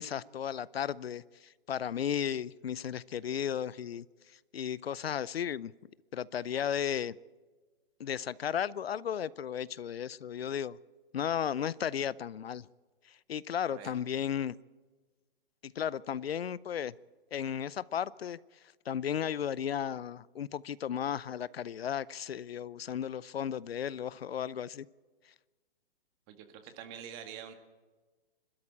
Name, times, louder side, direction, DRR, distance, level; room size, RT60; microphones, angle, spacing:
voice 1, 0.0-4.0 4.5-5.7 6.1-7.1 8.0-10.8 11.1-12.7 13.1-14.6 15.6-16.9 17.3-18.4 18.9-24.9, left 9 dB, 80° left, 20 dB, 0.6 m, -34 dB
voice 2, 26.3-27.5, right 9 dB, 30° right, 6 dB, 1.9 m, -46 dB
25.5 x 13.0 x 8.8 m, 1.3 s
hypercardioid pair, 145°, 30 cm